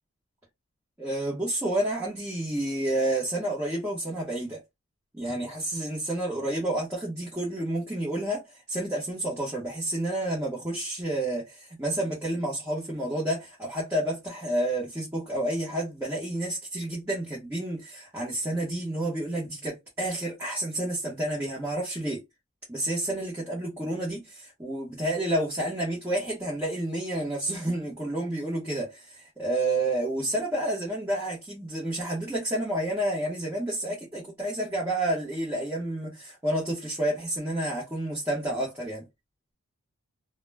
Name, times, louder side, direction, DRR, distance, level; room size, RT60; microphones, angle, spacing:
voice 1, 1.0-4.6 5.2-22.2 22.7-39.0, right 1 dB, 10° right, 0.7 m, -30 dB
2.1 x 2.1 x 3.2 m
head